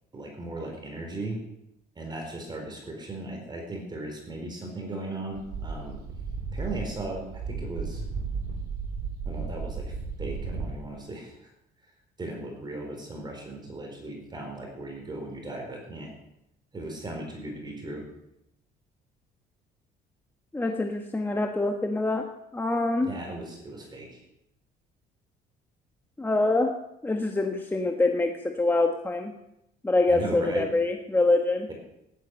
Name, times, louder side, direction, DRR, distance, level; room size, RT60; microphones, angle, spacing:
voice 1, 0.1-1.4 2.0-6.0 6.5-8.0 9.2-11.5 12.2-16.1 16.7-18.0 22.9-24.2 30.1-30.7, right 2 dB, 25° right, 2 dB, 4.3 m, -37 dB
sound 1, 5.3-10.7, right 4 dB, 70° right, 3.7 m, -34 dB
voice 2, 20.5-22.3 22.5-23.1 26.2-26.7 27.0-29.3 29.8-31.7, left 2 dB, 10° left, 3 dB, 1.3 m, -25 dB
15.5 x 11.5 x 6.4 m, 0.84 s
cardioid pair, 110°, 17 cm